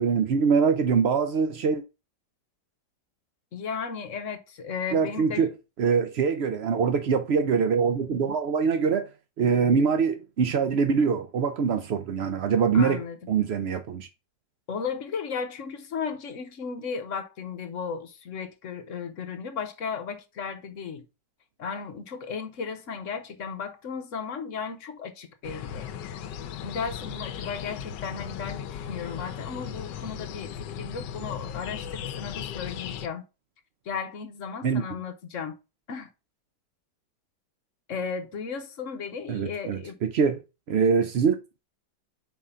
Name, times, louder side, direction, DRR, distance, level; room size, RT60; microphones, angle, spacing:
voice 1, 0.0-1.8 4.9-5.5 5.8-9.1 9.4-14.1 34.6-34.8 39.3-40.4 40.7-41.4, right 6 dB, 80° right, 0.5 m, -24 dB
voice 2, 3.5-5.5 12.7-13.2 14.7-21.0 21.6-25.9 26.6-33.3 33.8-35.6 35.9-36.1 37.9-40.0, left 6 dB, 55° left, 1.1 m, -35 dB
sound 1, 25.4-33.1, left 9 dB, 90° left, 1.3 m, -37 dB
4.9 x 3.7 x 5.5 m
omnidirectional pair, 1.8 m